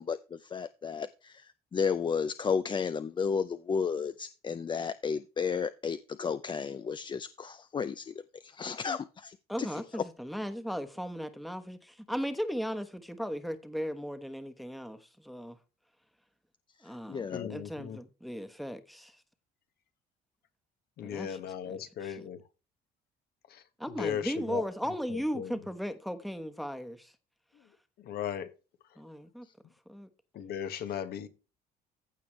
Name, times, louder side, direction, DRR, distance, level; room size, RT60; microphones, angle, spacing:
voice 1, 0.0-8.1 8.4-10.0 17.1-17.5, left 6 dB, 30° left, 0.5 m, -33 dB
voice 2, 9.5-15.6 16.8-19.1 21.0-22.3 23.8-27.1 29.0-29.5 29.9-30.1, equal, ahead, 1.1 m, -37 dB
voice 3, 17.3-18.0 21.0-22.4 23.5-23.6 24.0-24.6 25.1-25.5 28.0-28.5 30.3-31.3, left 9 dB, 65° left, 1.4 m, -37 dB
15.0 x 5.2 x 3.1 m
cardioid pair, 110°, 17 cm